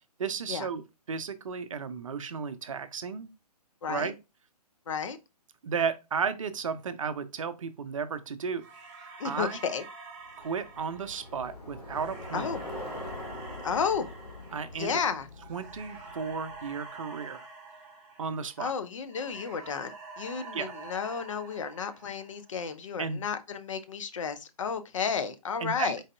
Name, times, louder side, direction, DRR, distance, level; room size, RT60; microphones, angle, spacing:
voice 1, 0.2-0.8 1.1-3.3 3.9-4.1 5.6-8.6 9.2-9.6 10.4-12.5 14.5-14.9 15.5-17.5 18.2-18.7 20.5-20.7 23.0-23.2 25.6-25.9, right 6 dB, 55° right, 0.5 m, -33 dB
voice 2, 3.8-4.1 4.9-5.2 9.2-9.8 12.3-12.6 13.6-14.1 14.8-15.3 18.6-26.0, left 6 dB, 50° left, 0.6 m, -32 dB
sound 1, 8.6-18.8 19.1-22.5, right 4 dB, 15° right, 0.9 m, -47 dB
Bicycle, 10.4-16.9, left 2 dB, 70° left, 1.1 m, -43 dB
4.0 x 3.7 x 2.2 m
figure-of-eight pair, 135°, 21 cm